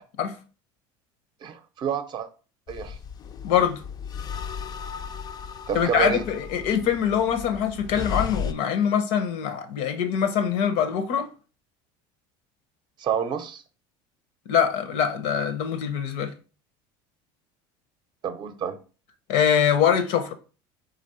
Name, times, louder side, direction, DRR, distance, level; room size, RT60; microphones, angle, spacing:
voice 1, 1.4-2.3 2.7-3.0 5.7-6.2 13.0-13.6 18.2-18.8, right 7 dB, 40° right, 0.6 m, -28 dB
sound 1, 2.7-8.5, left 6 dB, 35° left, 0.4 m, -35 dB
voice 2, 3.4-3.8 5.7-11.3 14.5-16.3 19.3-20.3, left 8 dB, 75° left, 0.7 m, -23 dB
4.1 x 3.0 x 4.2 m
supercardioid pair, 110°, 12 cm